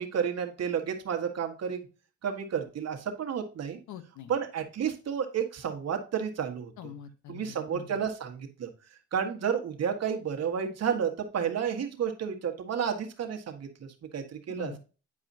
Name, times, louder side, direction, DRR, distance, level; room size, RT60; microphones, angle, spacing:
voice 1, 0.0-1.9 2.2-3.8 4.3-6.9 7.3-8.7 9.1-13.9 14.1-14.7, right 7 dB, 55° right, 4 dB, 1.5 m, -31 dB
voice 2, 3.9-4.3 6.8-8.0 14.5-14.8, left 9 dB, 75° left, 11 dB, 1.0 m, -44 dB
9.8 x 4.8 x 2.7 m, 0.34 s
cardioid pair, 90°, 30 cm